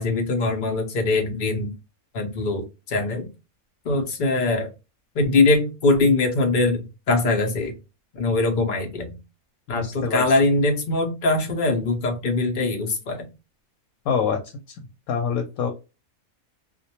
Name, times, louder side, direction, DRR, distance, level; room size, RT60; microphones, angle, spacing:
voice 1, 0.0-1.7 2.1-3.3 3.8-4.7 5.1-7.7 8.1-9.2 9.7-13.3, left 2 dB, 50° left, 3 dB, 0.7 m, -22 dB
voice 2, 9.7-10.2 14.1-14.4 15.1-15.7, left 6 dB, 85° left, 3 dB, 1.0 m, -25 dB
2.4 x 2.1 x 2.8 m, 0.28 s
omnidirectional pair, 1.5 m